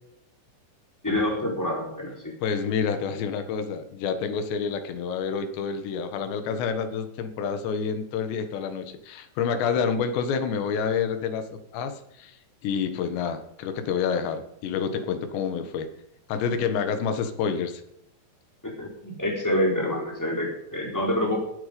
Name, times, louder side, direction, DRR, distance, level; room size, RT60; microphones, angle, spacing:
voice 1, 1.0-2.3 18.6-21.4, left 1 dB, 5° left, 0 dB, 3.3 m, -27 dB
voice 2, 2.4-11.5 11.7-12.4 12.6-15.9 16.3-17.8, left 6 dB, 75° left, 9 dB, 3.6 m, -28 dB
17.0 x 9.0 x 5.2 m, 0.78 s
omnidirectional pair, 5.3 m